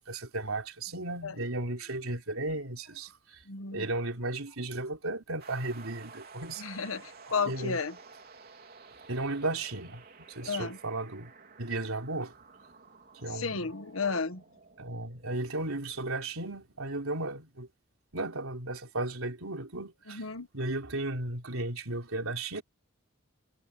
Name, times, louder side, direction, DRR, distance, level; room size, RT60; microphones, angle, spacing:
voice 1, 0.0-3.4 3.7-6.9 7.3-7.8 9.1-11.3 11.6-12.3 13.1-13.7 14.8-17.7 18.1-20.2 20.5-22.6, right 2 dB, 85° right, 3.5 m, -35 dB
voice 2, 3.5-3.9 6.6-7.9 10.4-10.8 13.4-14.4 20.1-20.5, left 4 dB, 75° left, 1.4 m, -33 dB
sound 1, 5.4-17.0, right 4 dB, 45° right, 3.7 m, -53 dB
head